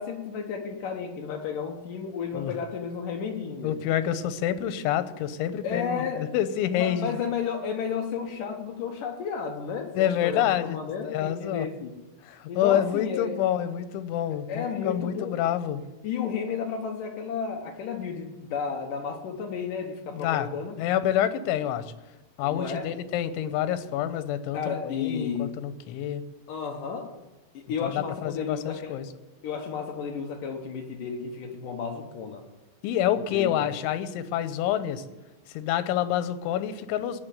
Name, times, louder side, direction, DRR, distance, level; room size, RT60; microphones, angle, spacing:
voice 1, 0.0-3.8 5.6-6.3 6.7-12.0 12.5-13.4 14.5-15.4 16.0-20.7 22.4-22.9 24.5-25.5 26.5-27.1 27.5-29.0 29.4-32.4 33.3-33.5, left 6 dB, 70° left, 3 dB, 2.1 m, -32 dB
voice 2, 3.6-7.2 9.9-10.8 11.0-11.7 12.2-15.8 20.1-21.9 22.4-26.3 27.8-29.1 32.8-35.0 35.5-37.2, left 11 dB, 90° left, 12 dB, 3.3 m, -27 dB
18.0 x 6.6 x 9.3 m, 1.1 s
omnidirectional pair, 5.3 m